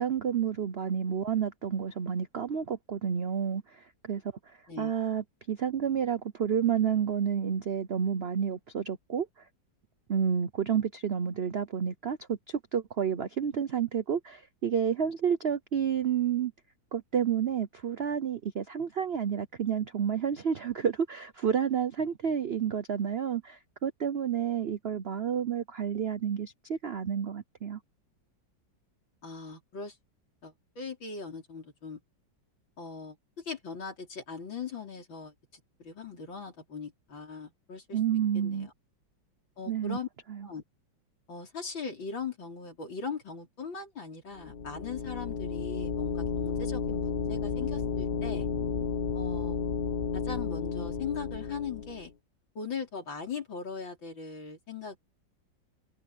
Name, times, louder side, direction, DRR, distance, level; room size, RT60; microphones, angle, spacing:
voice 1, 0.0-9.4 10.1-16.5 16.9-27.8 37.9-38.7 39.7-40.0 40.3-40.5, right 8 dB, 65° right, 0.6 m, -30 dB
voice 2, 29.2-30.0 30.4-32.0 32.8-38.0 38.3-38.7 39.6-40.1 40.4-40.6 41.3-48.5 49.2-49.6 50.1-52.1 52.6-55.0, left 5 dB, 75° left, 5.2 m, -40 dB
sound 1, 44.4-52.1, left 6 dB, 60° left, 0.6 m, -32 dB
omnidirectional pair, 2.1 m